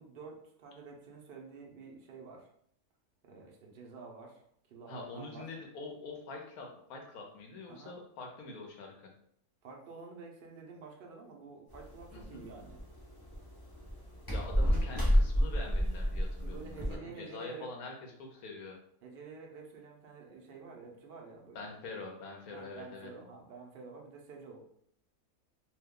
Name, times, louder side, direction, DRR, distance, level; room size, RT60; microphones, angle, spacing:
voice 1, 0.0-2.5 3.2-4.4 4.7-5.5 7.7-8.0 9.6-12.8 16.4-17.7 19.0-21.7 22.5-24.6, right 4 dB, 65° right, 0 dB, 0.5 m, -49 dB
voice 2, 4.9-9.1 12.1-12.4 14.3-18.8 21.5-23.1, left 3 dB, 70° left, 1 dB, 1.2 m, -45 dB
sound 1, 11.7-16.9, equal, 30° left, 0.4 m, -31 dB
2.8 x 2.2 x 3.6 m, 0.68 s
omnidirectional pair, 1.6 m